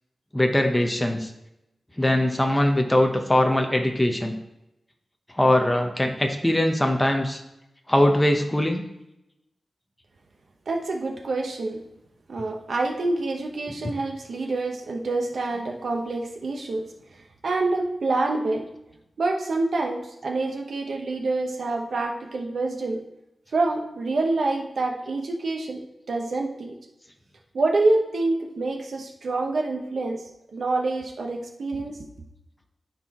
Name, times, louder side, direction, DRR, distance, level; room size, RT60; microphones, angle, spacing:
voice 1, 0.3-1.3 2.0-4.3 5.3-7.4 7.9-8.8 13.7-13.8, left 1 dB, 10° left, 3 dB, 0.9 m, -21 dB
voice 2, 10.7-11.8 12.3-16.8 17.1-18.6 19.2-23.0 23.5-25.8 26.1-26.7 27.5-30.2 30.5-32.0, right 2 dB, 70° right, 2 dB, 1.1 m, -26 dB
13.0 x 4.4 x 3.0 m, 0.87 s
wide cardioid pair, 110°, 0 cm